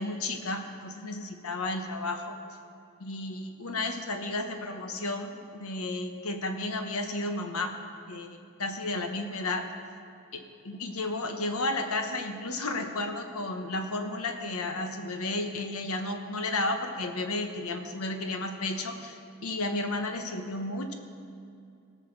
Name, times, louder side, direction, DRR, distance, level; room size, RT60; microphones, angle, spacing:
voice 1, 0.0-2.4 3.0-7.8 8.1-9.7 10.3-20.9, left 2 dB, 85° left, 6 dB, 1.1 m, -33 dB
17.0 x 6.6 x 6.6 m, 2.5 s
head